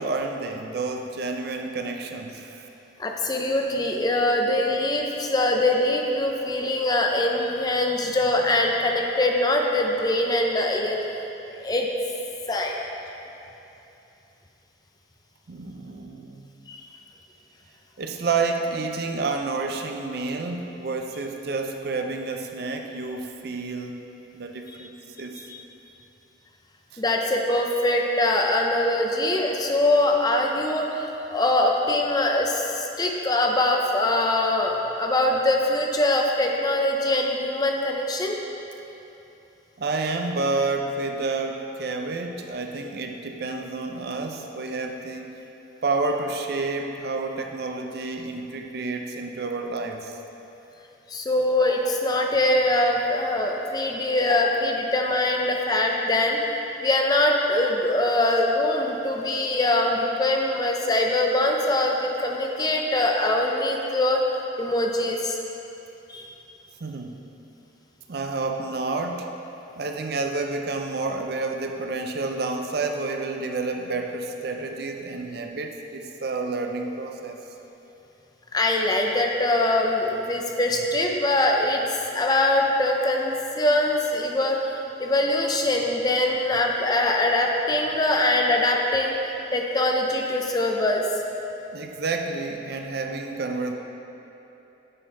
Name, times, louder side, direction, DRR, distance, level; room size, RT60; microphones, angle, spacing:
voice 1, 0.0-2.7 15.5-16.5 18.0-24.0 24.3-24.9 25.2-25.4 26.9-27.0 39.8-45.3 45.8-50.2 66.8-67.2 68.1-69.3 69.8-77.4 91.7-93.7, right 3 dB, 60° right, 4 dB, 0.5 m, -29 dB
voice 2, 3.0-11.0 11.6-11.9 12.5-12.8 16.7-16.8 24.8-24.9 25.5-25.6 27.0-38.4 51.1-56.4 56.8-64.2 64.6-65.4 66.1-66.3 78.5-81.8 82.1-91.0, left 1 dB, 20° left, 1 dB, 0.5 m, -23 dB
9.7 x 4.4 x 4.6 m, 3.0 s
head